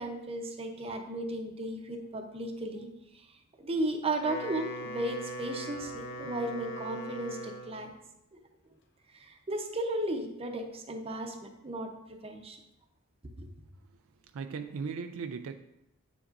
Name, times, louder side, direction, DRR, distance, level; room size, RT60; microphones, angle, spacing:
voice 1, 0.0-2.9 3.1-3.2 3.6-7.9 9.1-12.6 13.4-13.5, right 1 dB, 25° right, 5 dB, 0.7 m, -35 dB
Wind instrument woodwind instrument, 4.1-7.9, equal, 55° left, 0.8 m, -40 dB
voice 2, 14.3-15.6, right 5 dB, 65° right, 8 dB, 0.4 m, -37 dB
8.3 x 7.2 x 2.6 m, 0.85 s
head